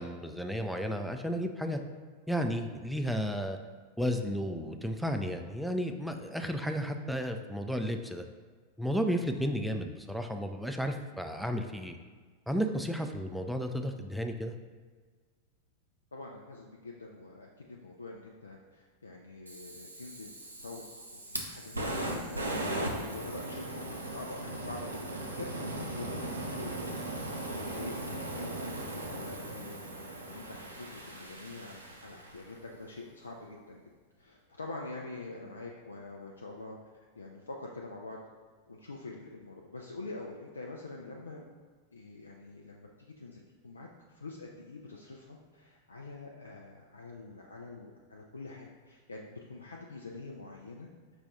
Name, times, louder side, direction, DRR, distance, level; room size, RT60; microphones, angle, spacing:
voice 1, 0.0-1.8 2.3-3.6 4.0-8.2 8.8-12.0 12.5-14.5, equal, ahead, 4 dB, 0.3 m, -33 dB
voice 2, 16.1-33.8 34.2-36.8 37.1-38.2 38.7-41.4 41.9-50.9, left 3 dB, 80° left, -1 dB, 0.3 m, -46 dB
Fire, 19.5-32.6, right 1 dB, 85° right, 0.5 m, -38 dB
5.1 x 2.3 x 4.0 m, 1.5 s
figure-of-eight pair, 90°, 0 cm